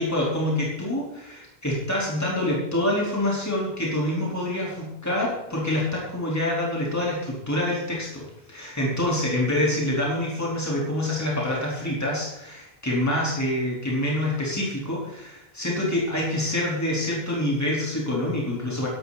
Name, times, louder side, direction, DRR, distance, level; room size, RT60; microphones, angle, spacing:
voice 1, 0.0-18.9, left 1 dB, 15° left, -5 dB, 4.2 m, -26 dB
16.5 x 11.5 x 4.2 m, 0.81 s
omnidirectional pair, 1.0 m